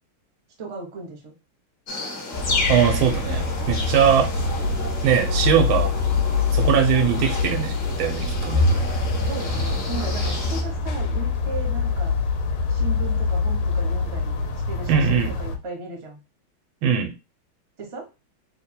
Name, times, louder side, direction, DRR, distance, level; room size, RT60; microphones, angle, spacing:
voice 1, 0.6-1.3 9.3-12.2 12.7-14.4 14.7-16.2 17.8-18.1, right 3 dB, 30° right, 1 dB, 0.6 m, -36 dB
sound 1, 1.9-10.6, left 2 dB, 45° left, 0.9 m, -32 dB
sound 2, 2.3-15.6, left 4 dB, 70° left, 1.3 m, -24 dB
voice 2, 2.7-4.3 5.0-5.9 6.5-8.6 14.9-15.3 16.8-17.1, right 8 dB, 90° right, 5 dB, 1.6 m, -21 dB
3.5 x 2.2 x 4.3 m, 0.29 s
omnidirectional pair, 2.2 m